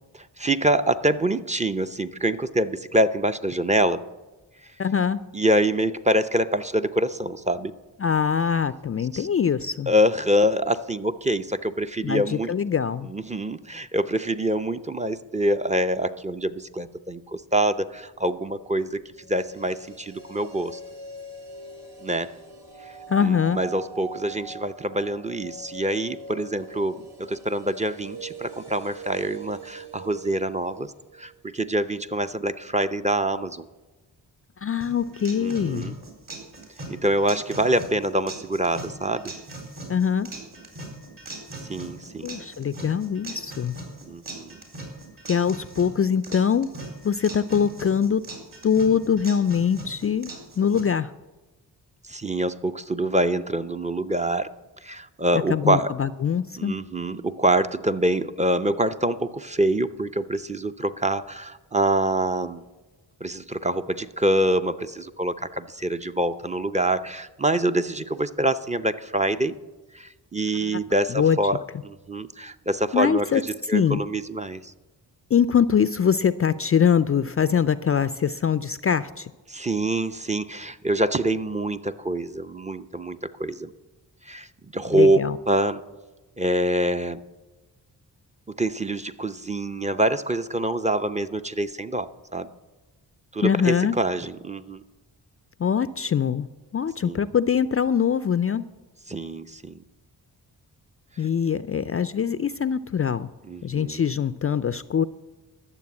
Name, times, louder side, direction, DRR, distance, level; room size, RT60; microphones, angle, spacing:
voice 1, 0.4-4.0 5.3-7.7 9.1-9.3 9.9-12.6 13.0-19.0 19.3-20.8 22.0-22.3 22.9-23.0 23.2-30.9 31.2-33.6 35.4-35.9 36.9-39.3 41.7-42.4 44.1-44.6 52.0-54.5 54.8-55.9 56.6-62.6 63.2-69.5 69.9-73.3 73.7-74.7 79.5-83.7 84.2-84.5 84.7-85.2 85.5-85.8 86.4-87.2 88.6-92.5 93.3-94.8 97.0-97.3 99.1-99.8 103.5-104.0, right 1 dB, 15° right, 9 dB, 0.6 m, -25 dB
voice 2, 4.8-5.2 8.0-9.9 12.0-13.1 23.1-23.6 34.6-35.9 39.9-40.3 42.2-43.8 45.3-46.7 47.0-48.2 48.6-51.1 55.5-56.7 70.6-70.7 71.1-71.4 72.9-73.4 73.7-74.0 75.3-79.3 84.9-85.4 93.4-94.0 95.6-96.5 96.7-98.6 101.2-103.3 103.6-105.0, left 7 dB, 35° left, 15 dB, 0.4 m, -23 dB
sound 1, 19.2-31.3 31.6-31.7, right 3 dB, 65° right, 4.3 m, -42 dB
sound 2, 34.8-50.8, right 2 dB, 50° right, 4.2 m, -40 dB
12.0 x 6.9 x 8.4 m, 1.2 s
cardioid pair, 50°, 43 cm